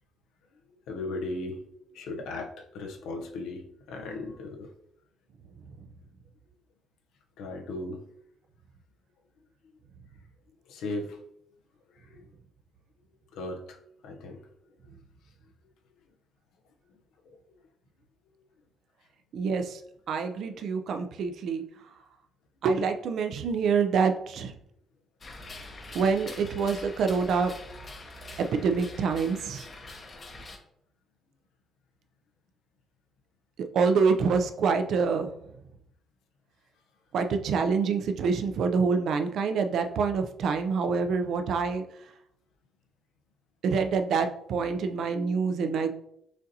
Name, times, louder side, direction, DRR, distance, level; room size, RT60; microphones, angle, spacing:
voice 1, 0.9-4.7 7.4-8.0 10.7-11.2 11.9-12.2 13.3-13.8 14.0-14.5 17.2-17.4, left 2 dB, 85° left, 4 dB, 0.7 m, -37 dB
voice 2, 19.3-19.8 20.1-21.6 22.6-24.5 25.9-27.5 28.4-29.7 33.7-35.3 37.1-41.8 43.6-45.9, right 5 dB, 70° right, 7 dB, 0.5 m, -26 dB
sound 1, 25.2-30.6, left 2 dB, 40° left, 0.8 m, -44 dB
6.2 x 2.6 x 2.8 m, 0.75 s
cardioid pair, 90°, 0 cm